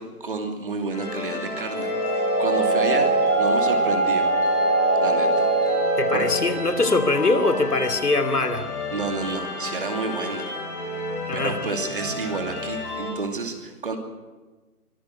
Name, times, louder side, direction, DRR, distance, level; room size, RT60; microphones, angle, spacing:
voice 1, 0.0-3.1 3.4-4.3 4.9-5.5 6.1-6.2 8.9-10.5 11.3-14.0, right 3 dB, 35° right, 4 dB, 2.7 m, -30 dB
sound 1, 0.9-13.1, left 3 dB, 25° left, 7.8 m, -33 dB
sound 2, 1.6-6.6, right 2 dB, 85° right, 5.3 m, -22 dB
voice 2, 6.0-8.7 11.3-11.6, left 3 dB, 85° left, 9 dB, 2.8 m, -22 dB
24.0 x 12.5 x 9.6 m, 1.3 s
figure-of-eight pair, 170°, 45 cm